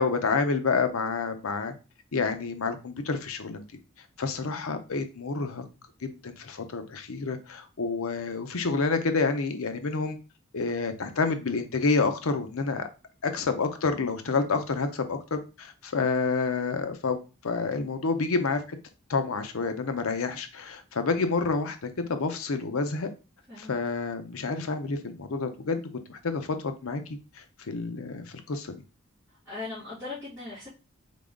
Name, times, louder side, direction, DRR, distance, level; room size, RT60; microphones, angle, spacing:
voice 1, 0.0-1.7 2.1-3.6 4.2-5.6 6.0-10.2 10.5-12.9 13.2-18.6 19.1-23.1 23.6-25.8 26.1-27.0 27.4-28.8, left 4 dB, 70° left, 8 dB, 0.6 m, -28 dB
voice 2, 23.5-23.8 29.3-30.7, left 3 dB, 10° right, -12 dB, 1.8 m, -40 dB
3.8 x 3.8 x 3.6 m, 0.32 s
head